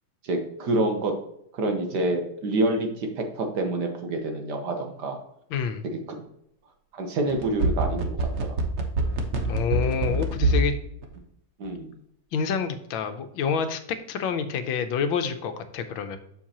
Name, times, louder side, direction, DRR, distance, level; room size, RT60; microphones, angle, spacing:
voice 1, 0.2-1.1 1.5-5.2 6.2-6.3 6.9-8.6 11.6-11.9, right 2 dB, 60° right, 4 dB, 1.6 m, -27 dB
voice 2, 5.5-5.8 9.5-10.7 12.3-13.8 14.1-16.2, left 6 dB, 85° left, 8 dB, 1.5 m, -27 dB
sound 1, 7.3-10.7 11.0-11.1, right 3 dB, 45° right, 1.0 m, -24 dB
7.3 x 6.6 x 2.9 m, 0.76 s
omnidirectional pair, 2.1 m